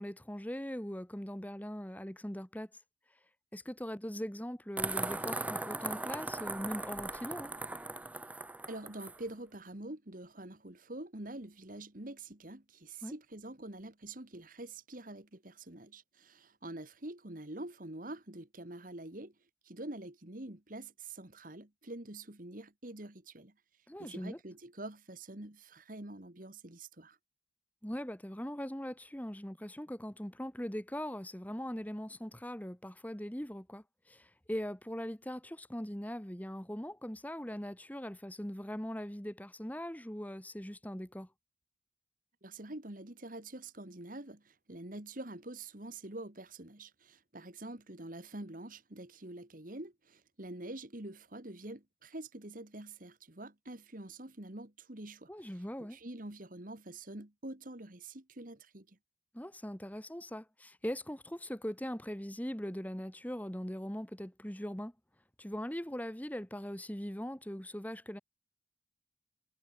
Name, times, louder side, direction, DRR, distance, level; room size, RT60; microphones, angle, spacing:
voice 1, 0.0-2.7 3.5-7.5 13.0-13.1 23.9-24.4 27.8-41.3 55.3-56.0 59.3-64.9 65.4-68.2, equal, 10° left, 1.3 m, -41 dB
sound 1, 4.8-9.2, right 2 dB, 5° right, 0.4 m, -38 dB
voice 2, 8.7-19.3 19.6-27.2 42.4-59.0, right 2 dB, 45° right, 2.0 m, -46 dB
head